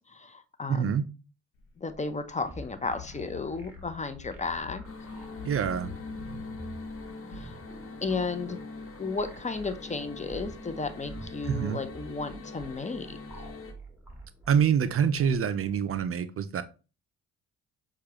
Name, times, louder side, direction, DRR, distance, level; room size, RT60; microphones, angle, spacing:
voice 1, 0.1-1.0 1.8-4.8 7.3-7.6 8.0-8.6 9.0-13.2, left 4 dB, 20° left, 10 dB, 0.7 m, -34 dB
voice 2, 0.7-1.0 5.4-5.9 11.4-11.8 14.5-16.6, right 7 dB, 40° right, 11 dB, 0.5 m, -26 dB
sound 1, 1.5-6.9, left 7 dB, 80° left, 1.1 m, -47 dB
sound 2, 2.4-16.1, right 2 dB, 5° right, 1.6 m, -47 dB
sound 3, 4.8-13.7, left 3 dB, 40° left, 1.2 m, -43 dB
6.4 x 2.4 x 3.0 m, 0.33 s
hypercardioid pair, 55°, 34 cm